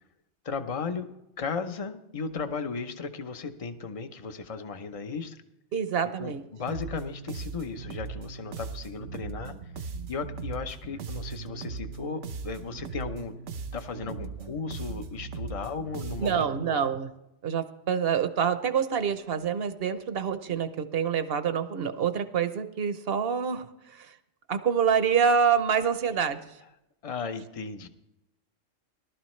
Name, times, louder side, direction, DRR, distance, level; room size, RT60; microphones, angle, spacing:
voice 1, 0.4-5.4 6.2-9.6 10.1-13.4 13.7-16.8 27.0-27.9, left 5 dB, 35° left, 8 dB, 0.8 m, -35 dB
voice 2, 5.7-6.4 16.2-17.1 17.4-24.2 24.5-26.6, right 7 dB, 55° right, 10 dB, 1.0 m, -27 dB
sound 1, 6.7-16.6, right 5 dB, 75° right, 1.2 m, -38 dB
18.5 x 12.0 x 3.2 m, 0.87 s
omnidirectional pair, 1.3 m